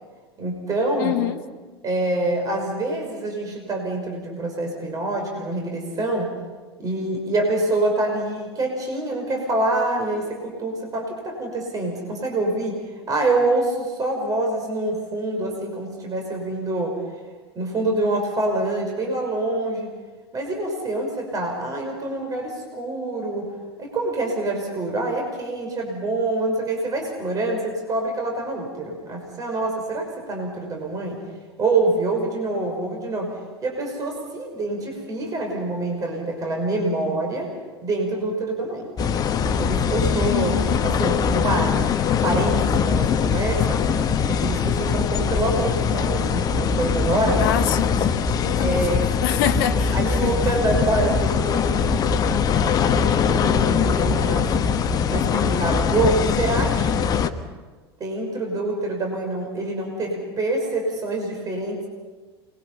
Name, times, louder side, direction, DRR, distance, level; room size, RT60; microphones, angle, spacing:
voice 1, 0.4-1.1 1.8-6.3 6.8-12.8 13.1-17.0 17.6-19.9 20.3-23.5 23.8-31.2 31.6-33.3 33.6-37.5 37.8-38.9 39.5-41.8 42.1-43.8 44.3-47.4 48.6-49.1 49.9-54.7 55.1-57.0 58.0-61.9, right 2 dB, 25° right, 5.7 m, -26 dB
voice 2, 1.0-1.4 40.3-40.9 47.4-50.3, left 11 dB, 50° left, 1.4 m, -26 dB
sound 1, 39.0-57.3, left 6 dB, 30° left, 1.2 m, -22 dB
29.0 x 22.0 x 5.7 m
figure-of-eight pair, 85°, 14 cm